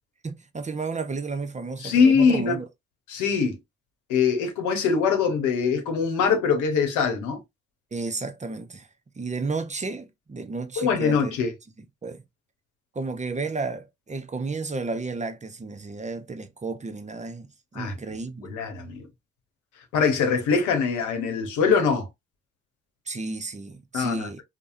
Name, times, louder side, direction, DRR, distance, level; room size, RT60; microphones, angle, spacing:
voice 1, 0.2-2.7 7.9-8.9 9.2-11.4 12.0-12.2 12.9-18.5 23.1-24.4, right 3 dB, 25° right, 0.6 m, -32 dB
voice 2, 1.8-2.6 3.1-3.6 4.1-7.4 10.8-11.5 17.8-17.9 18.5-19.1 19.9-22.1 23.9-24.3, left 5 dB, 80° left, 0.9 m, -22 dB
3.3 x 2.1 x 2.6 m
hypercardioid pair, 40°, 30 cm